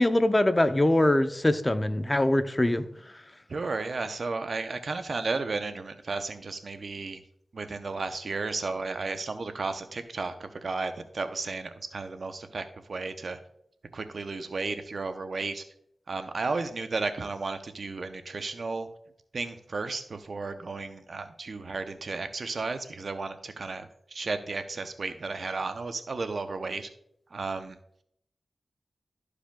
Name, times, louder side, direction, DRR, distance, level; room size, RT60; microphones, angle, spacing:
voice 1, 0.0-2.8, left 1 dB, 25° left, 11 dB, 0.6 m, -23 dB
voice 2, 3.5-7.2 7.5-13.4 13.9-15.6 16.1-18.9 19.3-26.9 27.3-27.8, right 3 dB, 70° right, 9 dB, 0.7 m, -33 dB
13.0 x 4.9 x 2.3 m, 0.72 s
cardioid pair, 40°, 0 cm